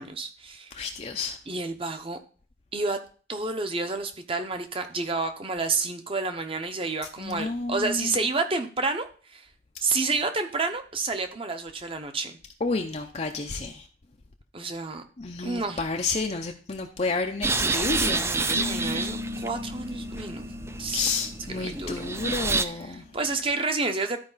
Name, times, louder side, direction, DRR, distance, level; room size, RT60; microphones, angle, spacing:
voice 1, 0.0-0.7 1.5-2.2 2.7-3.0 3.3-9.5 9.8-12.4 14.5-15.0 15.4-15.8 18.2-20.5 20.8-21.1 21.5-21.9 22.6-24.2, right 3 dB, 30° right, 0.8 m, -30 dB
voice 2, 0.7-1.4 7.2-8.1 12.6-13.9 15.2-18.3 20.9-23.1, left 3 dB, 35° left, 0.5 m, -30 dB
sound 1, 17.4-22.6, right 3 dB, 15° right, 0.3 m, -29 dB
sound 2, 18.5-23.5, left 2 dB, 70° right, 2.1 m, -38 dB
12.5 x 4.8 x 4.0 m
head